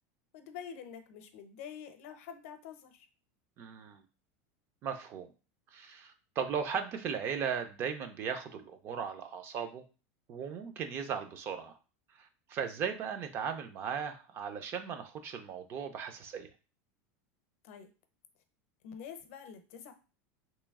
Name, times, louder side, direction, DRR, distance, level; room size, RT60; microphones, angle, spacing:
voice 1, 0.3-3.1 17.6-17.9 18.8-19.9, left 8 dB, 65° left, 8 dB, 0.6 m, -47 dB
voice 2, 3.6-4.0 4.8-5.3 5.7-9.8 10.3-11.7 12.2-16.5, right 7 dB, 30° right, 8 dB, 0.4 m, -37 dB
3.1 x 3.0 x 3.5 m, 0.33 s
supercardioid pair, 165°, 8 cm